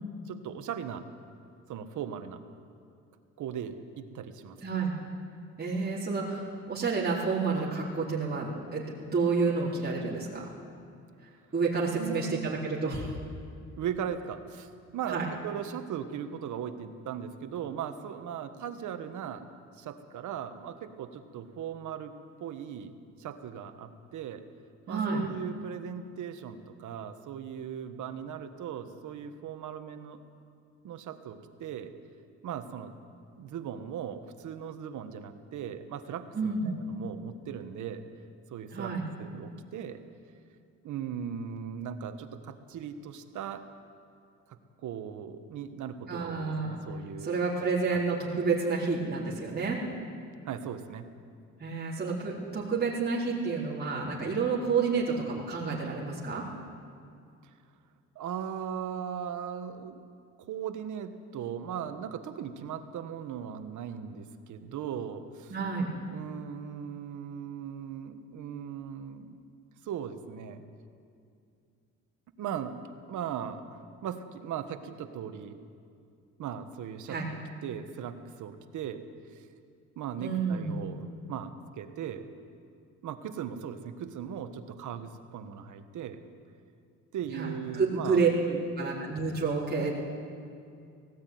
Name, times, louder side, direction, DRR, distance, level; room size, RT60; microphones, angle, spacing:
voice 1, 0.2-1.1 1.7-2.4 3.4-4.6 12.0-12.5 13.8-19.5 19.8-22.1 22.4-22.9 23.2-24.4 24.9-30.2 30.8-31.9 32.4-32.9 33.4-38.0 38.5-40.0 40.8-43.7 44.5-47.4 47.9-48.0 50.4-51.1 58.1-60.0 60.4-65.5 66.1-69.4 69.8-70.6 72.4-72.8 73.1-75.6 76.4-77.2 77.6-79.0 79.3-79.5 80.0-82.3 83.0-86.2 87.1-88.6, right 8 dB, 75° right, 8 dB, 1.5 m, -38 dB
voice 2, 4.6-4.9 5.6-8.8 9.1-10.4 11.5-13.1 15.1-15.3 24.9-25.2 36.3-36.7 38.7-39.0 46.1-46.8 47.2-49.8 51.6-56.4 65.5-65.9 77.1-77.3 80.2-80.8 87.3-88.3 88.8-89.9, right 4 dB, 30° right, -7 dB, 4.0 m, -29 dB
17.5 x 15.5 x 9.4 m, 2.4 s
cardioid pair, 90°, 30 cm